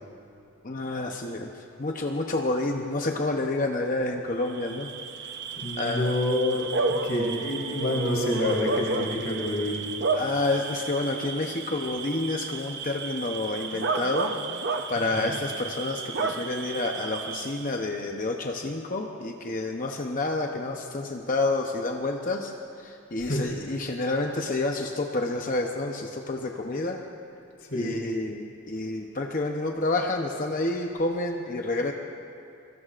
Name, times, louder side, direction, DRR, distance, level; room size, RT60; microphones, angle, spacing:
voice 1, 0.6-4.9 5.8-6.1 10.1-14.4 14.9-22.5 22.8-27.0 27.7-31.9, left 2 dB, 40° left, 2 dB, 0.8 m, -29 dB
Bark / Cricket, 4.5-17.8, right 4 dB, 55° right, 0.8 m, -32 dB
voice 2, 5.6-9.8 15.0-15.3 23.2-23.8 27.6-28.0, left 1 dB, 60° left, -2 dB, 3.8 m, -28 dB
25.5 x 22.5 x 2.5 m, 2.6 s
head